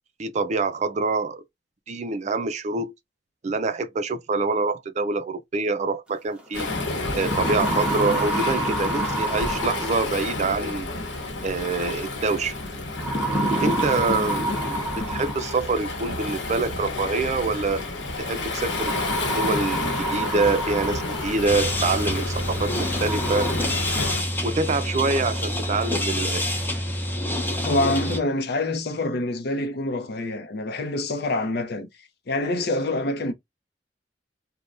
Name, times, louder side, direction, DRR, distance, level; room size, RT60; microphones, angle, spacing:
voice 1, 0.2-1.4 1.9-2.9 3.4-6.7 7.1-10.9 11.4-12.5 13.6-17.8 18.2-19.0 19.4-23.5 24.4-26.5, right 3 dB, 40° right, 0.4 m, -26 dB
sound 1, 6.4-6.5 6.9-10.4 11.8-12.2 13.0-15.8 17.0-17.1 18.6-21.5 22.0-22.1 22.6-22.7 23.0-23.5, right 1 dB, 5° right, 1.1 m, -28 dB
Waves surf, 6.5-24.2, left 2 dB, 80° left, 1.0 m, -30 dB
sound 2, 21.5-28.2, left 1 dB, 10° left, 0.7 m, -27 dB
voice 2, 27.6-31.9 32.3-33.3, left 2 dB, 60° left, 0.6 m, -26 dB
3.2 x 2.2 x 2.5 m
head